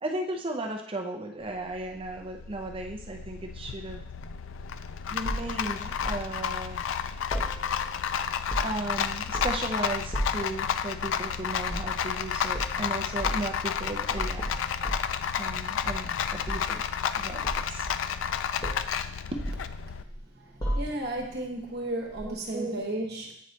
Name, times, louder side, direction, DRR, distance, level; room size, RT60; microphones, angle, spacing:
voice 1, 0.0-4.0 5.1-6.9 8.6-14.5 15.4-17.9 19.3-19.4 22.2-23.0, right 2 dB, 25° right, 3 dB, 0.6 m, -35 dB
Rattle, 1.4-20.0, left 8 dB, 80° left, 0.3 m, -31 dB
sound 1, 5.2-6.3 7.3-8.0 8.3-8.9 9.3-9.7 10.1-10.5 11.7-12.0 12.5-12.8 13.2-13.5 14.1-15.6 15.9-16.8 17.4-18.3 18.6-18.9 19.4-20.2 20.6-21.2 22.2-22.3, equal, 20° left, 1.1 m, -34 dB
voice 2, 20.3-23.3, right 1 dB, 55° right, 1 dB, 1.1 m, -34 dB
8.4 x 3.1 x 4.1 m, 0.69 s
head